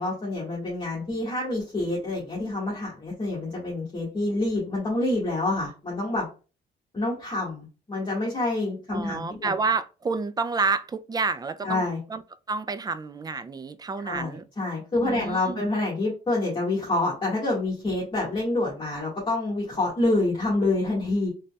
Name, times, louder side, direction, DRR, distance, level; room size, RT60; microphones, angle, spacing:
voice 1, 0.0-6.3 6.9-9.5 11.6-12.0 14.0-21.3, left 2 dB, 25° left, 1.7 m, -27 dB
voice 2, 8.9-11.8 12.1-12.2 12.5-14.4 14.9-15.6, right 4 dB, 20° right, 0.3 m, -29 dB
3.8 x 3.3 x 2.3 m
cardioid pair, 90°, 20 cm